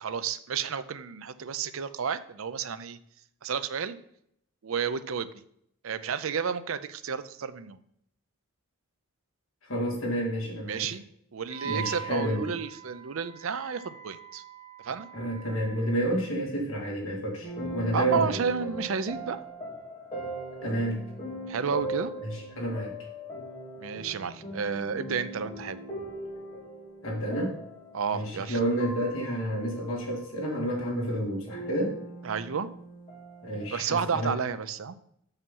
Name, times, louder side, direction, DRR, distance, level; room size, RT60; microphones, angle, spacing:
voice 1, 0.0-3.0 3.4-4.0 4.6-5.3 5.8-7.8 10.6-11.0 11.3-14.4 14.8-15.1 17.9-19.4 21.5-22.1 23.8-25.8 27.9-28.6 32.2-32.7 33.7-35.0, right 6 dB, 65° right, 13 dB, 0.5 m, -31 dB
voice 2, 9.7-10.8 11.6-12.5 15.1-18.4 20.6-21.0 22.2-22.9 27.0-27.6 28.1-32.0 33.4-34.3, right 1 dB, 65° left, -2 dB, 2.4 m, -30 dB
Wind instrument woodwind instrument, 11.5-16.1, right 8 dB, 90° left, 2.1 m, -42 dB
sound 1, 17.4-30.2 31.5-33.7, right 1 dB, 30° left, 3.0 m, -40 dB
6.9 x 5.6 x 5.4 m, 0.71 s
head